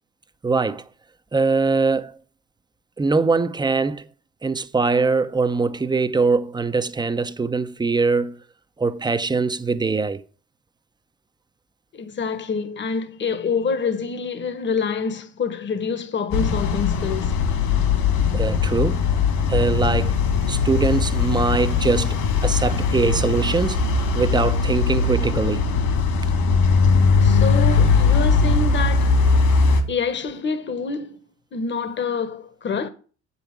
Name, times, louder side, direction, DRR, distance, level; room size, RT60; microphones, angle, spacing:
voice 1, 0.4-0.8 1.3-2.2 3.0-4.0 4.4-8.4 8.8-10.2 18.3-19.0 19.5-20.1 20.5-23.9 24.1-25.6, right 4 dB, 10° right, 0.8 m, -22 dB
voice 2, 11.9-17.4 27.2-29.2 29.9-31.2 31.5-32.9, left 5 dB, 35° left, 1.3 m, -26 dB
sound 1, 16.3-29.8, left 4 dB, 65° left, 2.6 m, -20 dB
7.8 x 5.5 x 5.9 m
hypercardioid pair, 70°, 34 cm